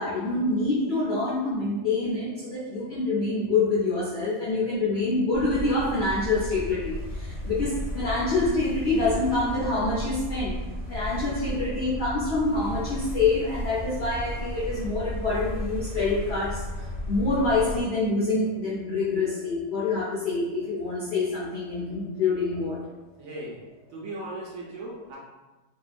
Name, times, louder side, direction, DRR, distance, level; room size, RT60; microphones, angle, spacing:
voice 1, 0.0-10.6 10.9-22.8, left 3 dB, 70° left, -8 dB, 0.6 m, -26 dB
sound 1, 5.3-17.8, left 1 dB, 20° right, 0.4 m, -34 dB
voice 2, 23.2-23.6 23.9-25.2, right 2 dB, 70° right, -4 dB, 0.9 m, -37 dB
2.7 x 2.2 x 2.4 m, 1.1 s
omnidirectional pair, 1.7 m